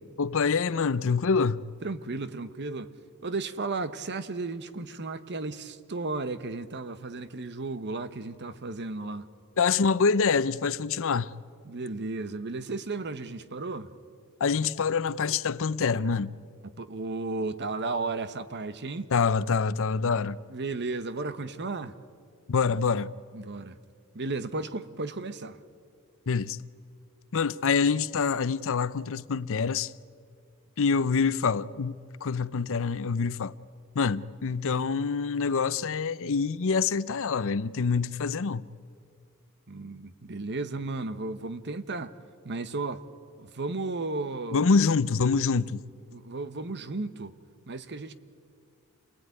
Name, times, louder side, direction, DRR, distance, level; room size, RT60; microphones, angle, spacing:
voice 1, 0.2-1.7 9.6-11.3 14.4-16.3 19.1-20.4 22.5-23.1 26.3-26.6 27.3-29.9 30.8-33.5 33.9-38.6 44.5-45.8, left 5 dB, 60° left, 0.6 m, -26 dB
voice 2, 1.8-2.9 3.2-9.3 11.6-13.9 16.8-19.1 20.2-22.0 23.3-23.8 24.1-25.6 39.7-42.1 42.4-43.0 43.4-44.6 46.1-47.4 47.7-48.1, right 3 dB, 50° right, 1.1 m, -34 dB
27.5 x 19.0 x 9.6 m
head